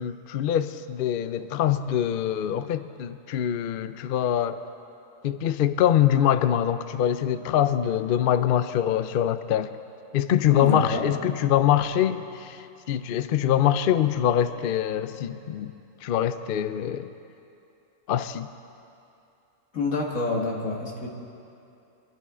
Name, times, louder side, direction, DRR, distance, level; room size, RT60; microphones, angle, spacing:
voice 1, 0.0-4.6 5.2-9.7 10.1-15.7 16.0-17.1 18.1-18.5, left 10 dB, 60° left, 11 dB, 0.6 m, -24 dB
voice 2, 10.5-11.1 19.7-21.1, left 3 dB, 90° left, -1 dB, 2.2 m, -27 dB
24.0 x 12.0 x 3.7 m, 2.7 s
omnidirectional pair, 1.4 m